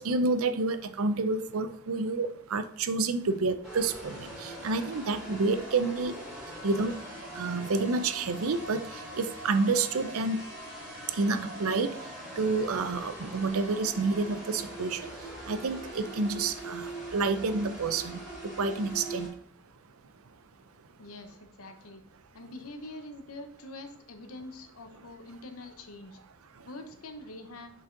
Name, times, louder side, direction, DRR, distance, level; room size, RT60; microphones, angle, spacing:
voice 1, 0.0-6.2 6.6-7.0 7.3-10.4 11.1-12.1 12.4-15.0 15.5-19.3, right 3 dB, 80° right, 11 dB, 0.6 m, -29 dB
sound 1, 3.6-19.3, right 1 dB, 5° right, 3.1 m, -42 dB
voice 2, 21.0-22.0 22.3-26.2 26.7-27.7, left 2 dB, 90° left, 7 dB, 0.9 m, -45 dB
7.0 x 5.5 x 3.8 m, 0.64 s
head